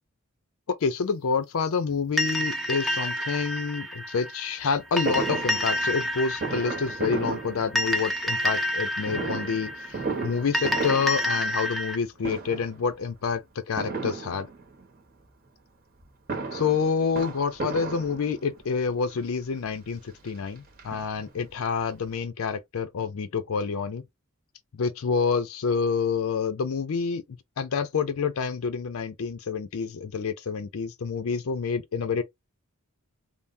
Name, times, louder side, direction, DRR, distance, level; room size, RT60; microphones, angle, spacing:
voice 1, 0.7-10.0 10.2-14.5 16.5-24.0 24.7-32.2, left 5 dB, 70° left, 0.5 m, -28 dB
sound 1, 2.2-12.0, equal, ahead, 0.4 m, -29 dB
Fireworks, 5.1-8.2 9.0-11.9 12.2-12.8 13.8-14.9 16.0-18.7 19.4-19.5 19.8-19.9 20.2-21.5 21.8-21.9 22.1-22.2, right 4 dB, 45° right, 0.8 m, -34 dB
3.3 x 2.0 x 2.5 m
head